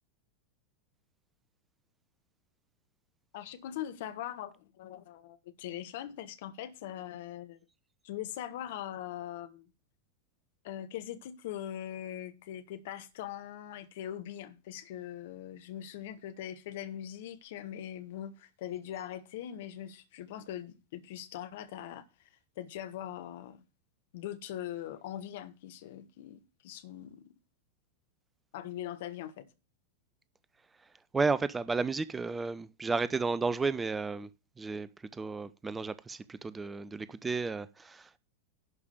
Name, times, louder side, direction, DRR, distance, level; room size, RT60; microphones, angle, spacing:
voice 1, 3.3-7.6 8.0-9.7 10.6-23.6 24.1-27.3 28.5-29.5, left 11 dB, 55° left, 1.2 m, -41 dB
voice 2, 30.8-34.3 34.6-38.2, right 4 dB, 15° right, 0.5 m, -33 dB
11.0 x 5.0 x 6.7 m
figure-of-eight pair, 90°, 0 cm